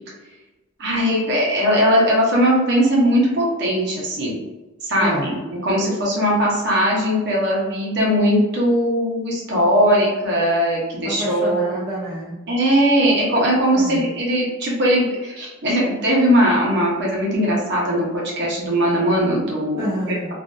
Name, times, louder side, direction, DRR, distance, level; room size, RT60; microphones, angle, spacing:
voice 1, 0.8-4.4 4.8-11.7 12.5-19.9, equal, 50° right, -4 dB, 0.8 m, -19 dB
voice 2, 5.0-5.4 11.0-12.4 13.7-14.0 19.8-20.3, right 1 dB, 10° right, -8 dB, 0.4 m, -27 dB
2.5 x 2.5 x 2.2 m, 1.1 s
head